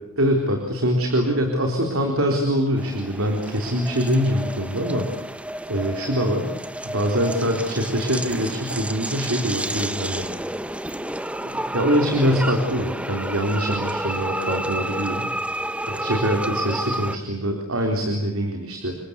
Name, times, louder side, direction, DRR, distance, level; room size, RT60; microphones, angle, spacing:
voice 1, 0.2-5.3 5.7-6.5 6.9-10.2 11.4-15.2 15.9-19.0, equal, 85° right, 3 dB, 4.0 m, -23 dB
sound 1, 2.8-17.2, right 1 dB, 5° right, 0.9 m, -30 dB
29.0 x 24.0 x 8.3 m, 0.96 s
head